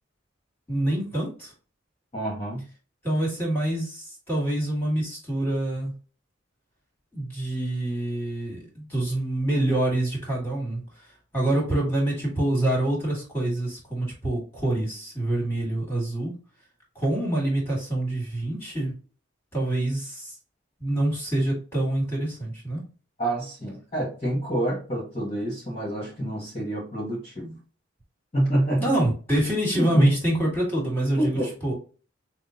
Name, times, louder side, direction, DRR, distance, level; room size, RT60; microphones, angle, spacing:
voice 1, 0.7-1.5 3.0-5.9 7.1-10.8 11.3-16.3 17.0-18.9 19.5-20.3 20.8-22.8 28.8-31.7, right 1 dB, 10° left, -2 dB, 2.3 m, -26 dB
voice 2, 2.1-2.6 23.2-27.6 28.3-28.8 29.7-30.1 31.2-31.5, right 1 dB, 30° left, -5 dB, 1.6 m, -27 dB
6.2 x 2.3 x 2.8 m, 0.36 s
head